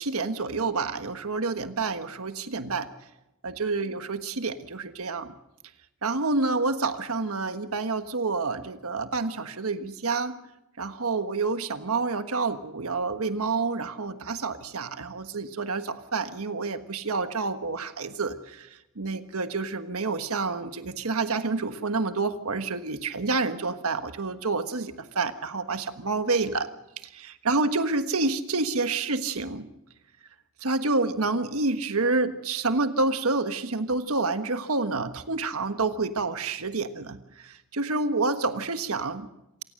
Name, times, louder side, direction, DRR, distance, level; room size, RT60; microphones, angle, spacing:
voice 1, 0.0-2.9 3.4-5.3 6.0-10.4 10.8-18.7 19.0-26.7 27.0-29.7 30.6-39.3, right 3 dB, 70° right, 9 dB, 1.4 m, -28 dB
27.0 x 17.0 x 6.5 m, 0.90 s
head